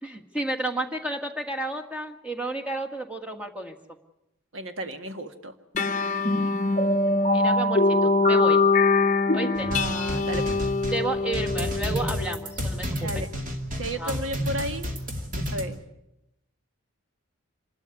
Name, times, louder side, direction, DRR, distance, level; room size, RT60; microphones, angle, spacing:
voice 1, 0.0-3.8 6.3-6.5 7.3-8.6 9.3-9.7 10.9-13.2 14.0-14.2, right 2 dB, 5° right, 3 dB, 1.6 m, -32 dB
voice 2, 4.5-5.5 9.7-10.6 13.0-13.3 13.8-14.9 15.3-15.8, right 1 dB, 65° right, 7 dB, 1.8 m, -33 dB
sound 1, 5.7-12.6, left 3 dB, 35° left, 0.8 m, -23 dB
sound 2, 9.6-15.6, equal, 35° right, 2.4 m, -31 dB
26.0 x 13.0 x 9.8 m, 0.87 s
head